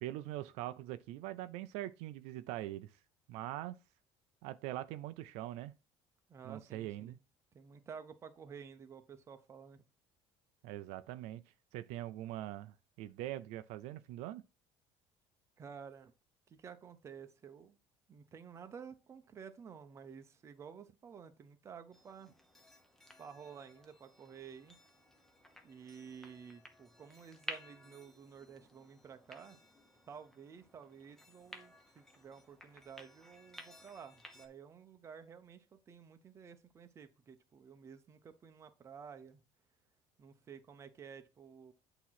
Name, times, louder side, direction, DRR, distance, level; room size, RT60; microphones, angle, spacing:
voice 1, 0.0-2.9 3.3-3.8 4.4-5.7 6.4-7.2 10.6-11.4 11.7-14.4, right 14 dB, 80° right, 0.5 m, -42 dB
voice 2, 6.3-7.2 7.5-9.8 15.6-16.1 16.5-17.8 18.1-22.3 23.2-24.8 25.6-29.6 30.1-39.4 40.2-41.7, right 6 dB, 25° right, 0.8 m, -52 dB
sound 1, 21.9-34.5, left 1 dB, 5° left, 0.8 m, -54 dB
8.5 x 3.0 x 5.7 m
cardioid pair, 155°, 11 cm